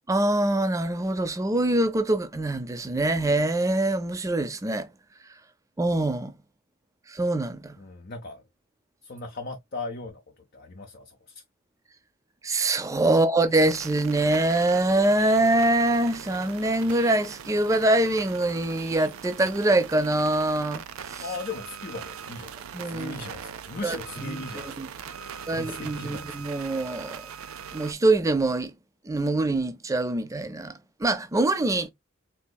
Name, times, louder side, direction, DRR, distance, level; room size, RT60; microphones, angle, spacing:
voice 1, 0.1-4.9 5.8-6.3 7.1-7.8 12.4-21.2 22.7-23.2 23.8-24.4 24.8-24.9 25.5-27.2 27.7-28.7 29.1-30.7 31.0-31.9, right 2 dB, 15° right, 0.4 m, -24 dB
voice 2, 7.8-8.4 9.0-10.2 10.5-11.4 13.1-13.2 21.2-26.4, left 3 dB, 45° left, 0.5 m, -38 dB
sound 1, 13.5-27.9, right 7 dB, 85° right, 0.4 m, -41 dB
4.0 x 2.7 x 2.2 m
head